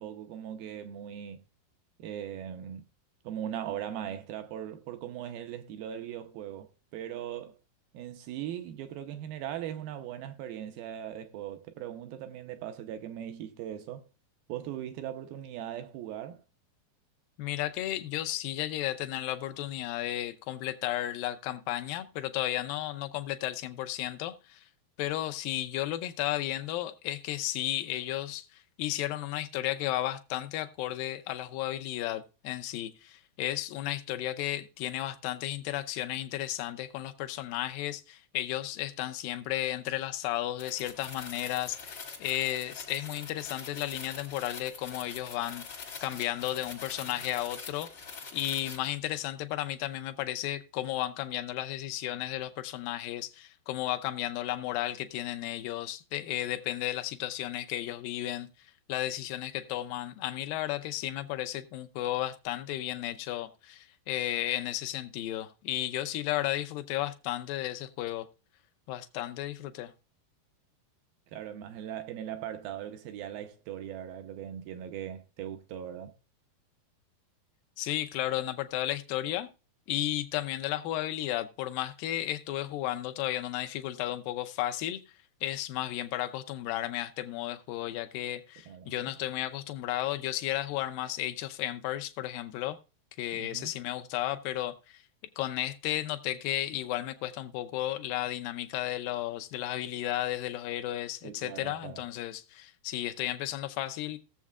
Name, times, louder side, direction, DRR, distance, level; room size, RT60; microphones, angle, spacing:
voice 1, 0.0-1.4 2.0-2.9 3.2-7.6 7.9-14.1 14.5-16.4 71.3-76.1 88.7-89.2 93.3-93.7 101.2-102.0, right 10 dB, 80° right, 2.3 m, -39 dB
voice 2, 17.4-24.7 25.0-47.9 48.3-68.3 68.9-69.9 77.8-79.5 79.9-85.0 85.4-92.8 93.2-95.0 95.4-104.2, left 14 dB, 80° left, 2.0 m, -33 dB
sound 1, 40.6-49.0, left 5 dB, 55° left, 1.1 m, -44 dB
18.5 x 7.3 x 2.4 m
omnidirectional pair, 4.8 m